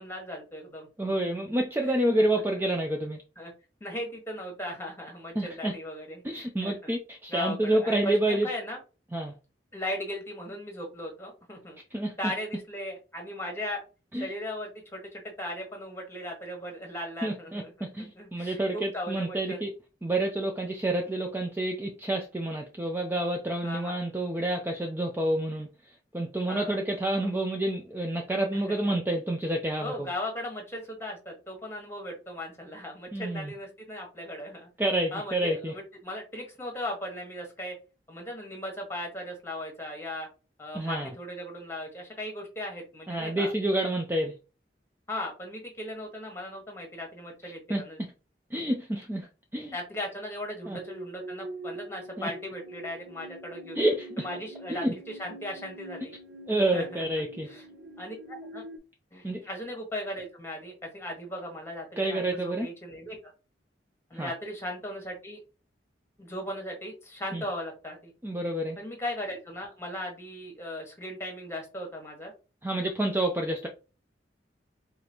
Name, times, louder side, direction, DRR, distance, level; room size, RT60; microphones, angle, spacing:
voice 1, 0.0-1.2 1.5-1.6 1.8-2.2 3.4-3.5 3.8-6.9 7.3-8.8 9.7-11.8 12.2-13.8 14.1-17.9 18.1-19.6 23.6-24.0 26.5-26.8 28.5-28.9 29.8-34.7 35.1-37.7 38.1-40.3 40.6-43.5 45.1-48.0 49.7-53.8 54.2-56.1 56.7-57.0 57.5-57.6 58.0-58.6 59.1-63.2 64.1-65.4 66.2-68.1 68.8-72.3, left 1 dB, 15° left, 2 dB, 1.3 m, -38 dB
voice 2, 1.0-3.2 5.4-5.7 6.2-8.5 9.1-9.3 11.9-12.3 14.1-14.3 17.2-19.7 20.0-30.1 33.1-33.5 34.8-35.7 40.7-41.1 43.1-44.3 47.4-47.8 48.5-49.7 50.7-50.8 52.2-52.3 53.7-54.2 54.7-54.9 56.5-57.5 59.2-59.4 62.0-62.7 64.1-64.3 67.3-67.4 68.2-68.8 72.6-73.7, right 1 dB, 10° right, 2 dB, 0.4 m, -29 dB
sound 1, 50.6-58.8, right 1 dB, 80° right, 0.7 m, -44 dB
4.9 x 2.5 x 2.8 m, 0.32 s
head